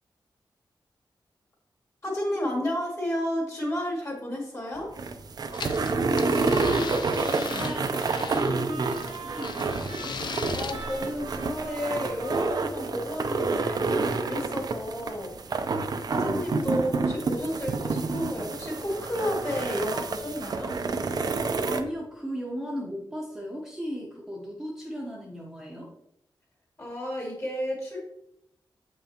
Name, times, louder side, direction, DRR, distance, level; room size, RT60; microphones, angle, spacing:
voice 1, 2.0-4.9 10.5-15.7 16.1-20.7 26.8-28.0, left 1 dB, 35° left, -2 dB, 2.3 m, -32 dB
sound 1, 4.8-21.8, right 4 dB, 55° right, 0.5 m, -29 dB
sound 2, 5.5-8.5 8.9-10.7, left 5 dB, 65° left, 0.5 m, -37 dB
voice 2, 5.8-10.2 21.5-25.9, equal, 5° right, -3 dB, 0.8 m, -37 dB
Trumpet, 7.4-14.5, right 4 dB, 85° right, 1.2 m, -44 dB
7.4 x 5.6 x 2.9 m, 0.79 s
wide cardioid pair, 150°, 8 cm